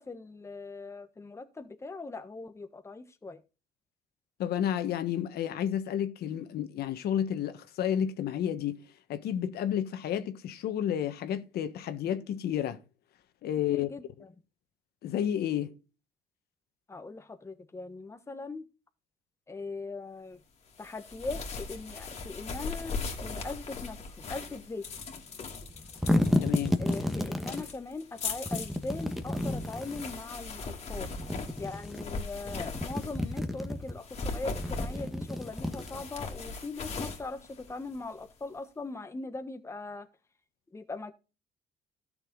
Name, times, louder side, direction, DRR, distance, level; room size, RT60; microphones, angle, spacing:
voice 1, 0.0-3.4 13.7-14.3 16.9-18.6 19.5-20.4 20.8-24.9 26.8-31.1 31.6-40.1 40.7-41.1, left 3 dB, 15° left, 1.3 m, -40 dB
voice 2, 4.4-12.8 13.4-13.9 15.0-15.7 26.4-26.8, left 10 dB, 70° left, 1.4 m, -31 dB
sound 1, 20.8-33.4 33.9-38.2, left 4 dB, 40° left, 2.7 m, -39 dB
sound 2, 25.7-27.7 28.5-30.1 31.0-32.0 32.4-33.9 34.5-36.3, left 1 dB, ahead, 1.5 m, -31 dB
13.0 x 6.9 x 3.9 m
cardioid pair, 110°, 17 cm